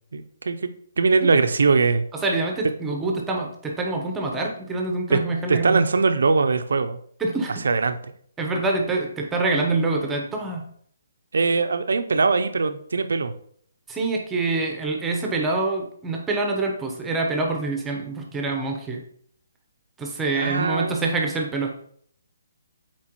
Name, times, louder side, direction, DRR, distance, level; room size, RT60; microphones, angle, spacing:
voice 1, 0.1-0.6 1.0-2.0 5.1-5.2 5.5-7.0 7.6-8.0 11.3-13.3 20.3-20.9, right 4 dB, 75° right, 8 dB, 0.6 m, -21 dB
voice 2, 2.1-5.8 7.2-7.5 8.4-10.7 13.9-19.0 20.0-21.7, right 3 dB, 10° right, 1 dB, 1.0 m, -26 dB
7.4 x 4.5 x 3.1 m, 0.62 s
hypercardioid pair, 145°, 0 cm